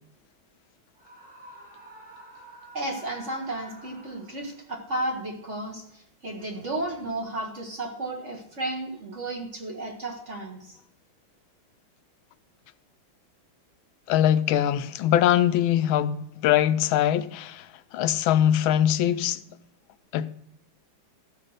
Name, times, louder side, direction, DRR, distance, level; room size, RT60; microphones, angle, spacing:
Screaming, 1.0-4.6, right 1 dB, 70° right, 5.1 m, -48 dB
voice 1, 2.7-10.8, right 1 dB, 40° right, 2.0 m, -33 dB
voice 2, 14.1-19.4 20.1-20.3, left 11 dB, 90° left, 1.4 m, -22 dB
13.5 x 6.0 x 6.4 m
omnidirectional pair, 2.2 m